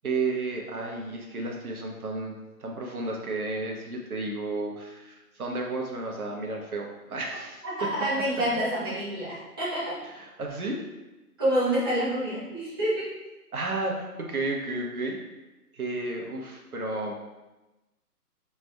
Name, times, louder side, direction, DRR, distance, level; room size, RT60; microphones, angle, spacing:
voice 1, 0.0-8.1 10.0-10.8 13.5-15.2 15.7-17.1, right 2 dB, 65° right, 0 dB, 1.1 m, -32 dB
voice 2, 7.6-10.0 11.4-13.2, right 1 dB, 15° right, -10 dB, 0.7 m, -28 dB
5.8 x 3.4 x 2.2 m, 1.1 s
figure-of-eight pair, 145°, 47 cm